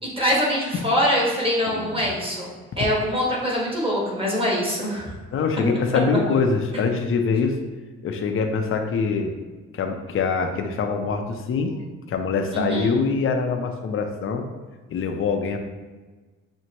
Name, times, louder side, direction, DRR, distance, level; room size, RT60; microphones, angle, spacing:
voice 1, 0.0-2.5 2.8-5.1 12.5-13.0, equal, 20° right, -4 dB, 1.3 m, -23 dB
voice 2, 1.7-2.0 5.3-7.6 8.0-9.3 9.7-11.8 12.1-14.4 14.9-15.6, left 5 dB, 45° left, 5 dB, 0.5 m, -24 dB
6.2 x 2.1 x 2.9 m, 1.3 s
cardioid pair, 90°, 30 cm